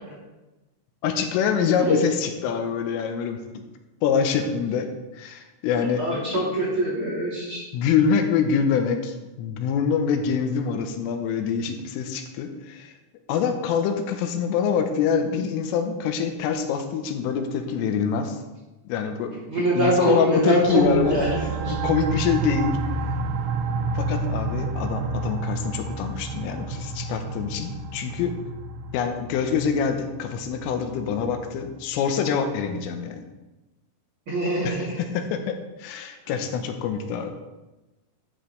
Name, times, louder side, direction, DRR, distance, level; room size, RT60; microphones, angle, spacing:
voice 1, 1.0-3.6 4.0-6.2 7.7-12.9 13.3-18.4 18.9-19.3 19.8-21.2 21.7-22.8 24.0-28.4 28.9-33.2 34.6-34.7 35.2-37.3, left 6 dB, 85° left, 6 dB, 3.4 m, -25 dB
voice 2, 5.8-7.6 19.5-21.8 34.3-35.1 36.2-36.4, right 1 dB, 30° right, -6 dB, 2.9 m, -24 dB
sound 1, 20.6-32.0, right 3 dB, 80° right, 3.2 m, -30 dB
12.5 x 11.0 x 3.3 m, 1.1 s
omnidirectional pair, 5.9 m